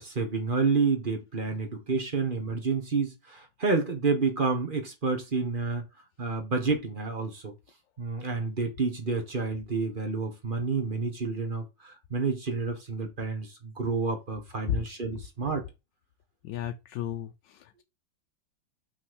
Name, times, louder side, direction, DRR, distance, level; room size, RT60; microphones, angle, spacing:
voice 1, 0.0-5.8 6.2-7.5 8.0-15.6, right 4 dB, 30° right, 1.4 m, -29 dB
voice 2, 16.4-17.8, left 11 dB, 75° left, 1.2 m, -36 dB
5.7 x 4.3 x 6.3 m
omnidirectional pair, 2.1 m